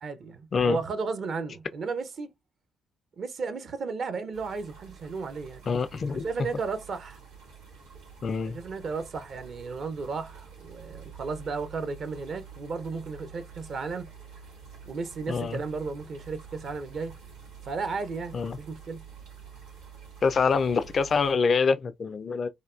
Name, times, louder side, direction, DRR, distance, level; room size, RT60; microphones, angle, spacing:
voice 1, 0.0-2.3 3.2-5.6 6.1-7.2 8.4-14.1 14.9-17.2 17.6-19.0, right 4 dB, 50° right, 0.6 m, -34 dB
sound 1, 4.3-21.3, right 6 dB, 75° right, 1.4 m, -48 dB
voice 2, 5.7-6.3 8.2-8.6 15.3-15.6 18.3-18.6 20.2-22.5, left 5 dB, 45° left, 0.3 m, -25 dB
3.1 x 2.3 x 2.4 m
figure-of-eight pair, 45°, 0 cm